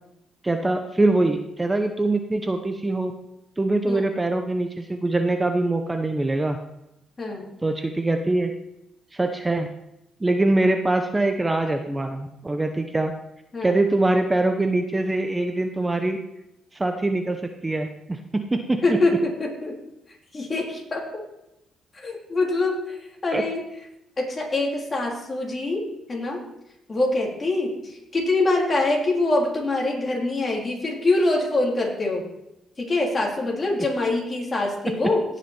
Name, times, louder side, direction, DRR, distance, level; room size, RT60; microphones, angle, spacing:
voice 1, 0.4-3.1 3.6-6.6 7.6-8.5 9.1-9.7 10.2-13.1 13.6-16.2 16.7-19.0 23.3-23.4 34.5-34.6, right 2 dB, 15° right, 6 dB, 0.8 m, -23 dB
voice 2, 7.2-7.5 13.5-13.8 18.8-19.8 20.3-21.3 21.9-22.9 23.2-23.6 24.2-26.4 26.9-32.3 32.8-35.2, left 2 dB, 30° left, -2 dB, 3.5 m, -24 dB
17.0 x 6.1 x 4.4 m, 0.86 s
cardioid pair, 90°, 0 cm